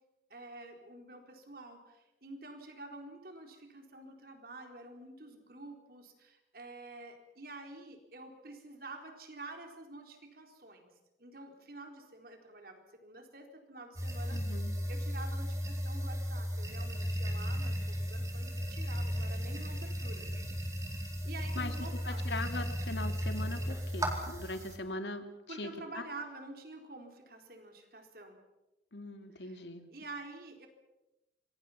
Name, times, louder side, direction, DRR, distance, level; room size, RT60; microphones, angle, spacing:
voice 1, 0.3-10.9 11.2-14.4 14.9-20.3 20.7-20.9 21.2-22.2 25.5-28.4 29.4-29.6 29.9-30.7, right 2 dB, 55° right, 4 dB, 4.1 m, -48 dB
sound 1, 14.0-24.8, equal, 20° right, 4.1 m, -35 dB
voice 2, 14.3-14.7 21.5-21.7 22.1-25.7 28.9-29.9, left 2 dB, 80° left, 7 dB, 2.7 m, -40 dB
27.0 x 23.5 x 5.9 m, 1.0 s
head